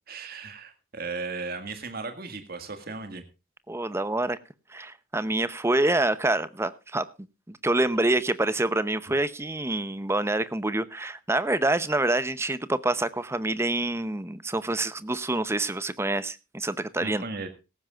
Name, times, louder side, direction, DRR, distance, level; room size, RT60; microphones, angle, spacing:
voice 1, 0.1-3.2 17.0-17.5, right 3 dB, 45° right, 7 dB, 1.9 m, -36 dB
voice 2, 3.7-4.4 4.7-7.0 7.5-17.2, right 2 dB, 10° right, 15 dB, 0.7 m, -26 dB
17.5 x 15.0 x 2.4 m, 0.28 s
head